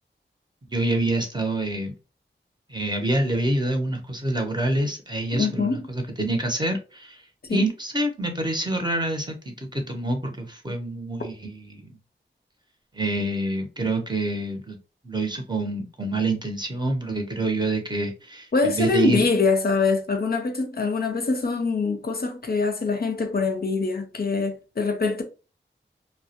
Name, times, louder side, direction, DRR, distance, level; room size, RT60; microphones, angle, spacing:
voice 1, 0.7-1.9 2.7-7.2 7.5-12.0 12.9-14.8 15.0-19.3, right 2 dB, 20° right, 0.7 m, -27 dB
voice 2, 5.3-5.9 7.5-7.6 18.5-25.2, left 4 dB, 50° left, 0.5 m, -24 dB
2.2 x 2.1 x 2.8 m
cardioid pair, 45°, 20 cm